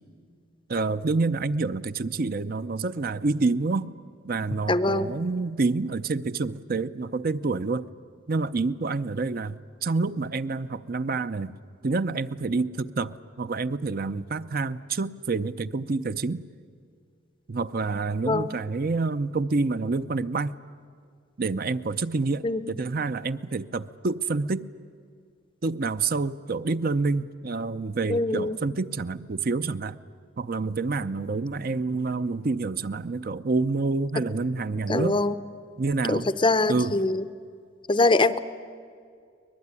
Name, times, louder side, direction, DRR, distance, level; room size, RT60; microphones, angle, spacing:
voice 1, 0.7-3.9 4.2-7.9 8.3-11.5 11.8-16.4 17.5-20.5 21.4-24.7 25.6-30.0 30.4-35.2 35.8-36.3 36.7-37.0, right 3 dB, 45° right, 12 dB, 0.6 m, -28 dB
voice 2, 4.7-5.1 18.2-18.5 22.4-22.7 28.1-28.6 34.9-35.4 36.1-37.2 37.9-38.4, left 2 dB, 25° left, 13 dB, 0.6 m, -23 dB
24.0 x 20.0 x 9.7 m, 2.2 s
head